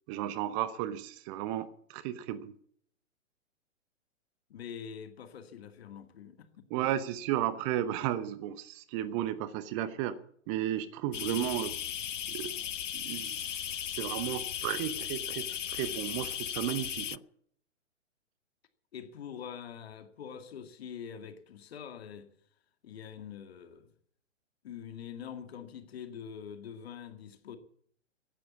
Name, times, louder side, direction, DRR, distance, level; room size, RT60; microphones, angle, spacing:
voice 1, 0.1-2.5 6.7-10.2 10.5-11.8 12.3-12.5 12.9-17.2, right 12 dB, 25° right, 0.8 m, -34 dB
voice 2, 4.5-6.7 11.2-11.4 18.9-22.3 22.8-23.9 24.6-27.6, left 8 dB, 55° left, 2.1 m, -44 dB
sound 1, 11.1-17.2, left 10 dB, 75° left, 0.6 m, -36 dB
15.5 x 10.5 x 8.4 m
figure-of-eight pair, 120°, 37 cm